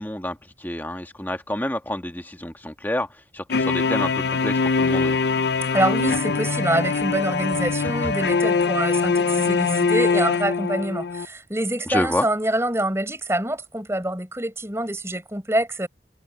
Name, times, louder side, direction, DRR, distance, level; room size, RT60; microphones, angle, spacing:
voice 1, 0.0-3.1 3.3-5.2 8.0-8.1 11.9-12.3, left 1 dB, 10° left, 1.6 m, -28 dB
sound 1, 3.5-11.3, left 4 dB, 70° left, 0.6 m, -22 dB
voice 2, 5.7-15.9, right 1 dB, 15° right, 5.6 m, -25 dB
head